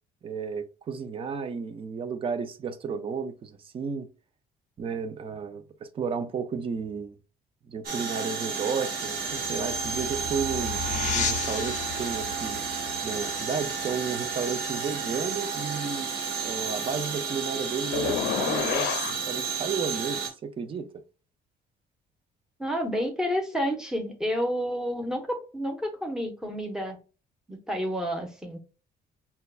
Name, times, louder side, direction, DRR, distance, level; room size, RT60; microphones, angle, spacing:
voice 1, 0.2-4.1 4.8-5.6 5.9-7.2 7.7-10.8 11.1-12.6 13.0-16.1 16.4-20.9, right 5 dB, 30° right, 0.5 m, -32 dB
sound 1, 7.8-20.3, right 6 dB, 60° right, 1.2 m, -32 dB
sound 2, 9.2-14.6, left 8 dB, 45° left, 0.4 m, -35 dB
sound 3, 17.9-19.2, left 9 dB, 85° left, 0.6 m, -28 dB
voice 2, 22.6-27.0 27.5-28.6, equal, 5° right, 0.8 m, -30 dB
5.4 x 2.3 x 2.3 m
cardioid pair, 155°, 17 cm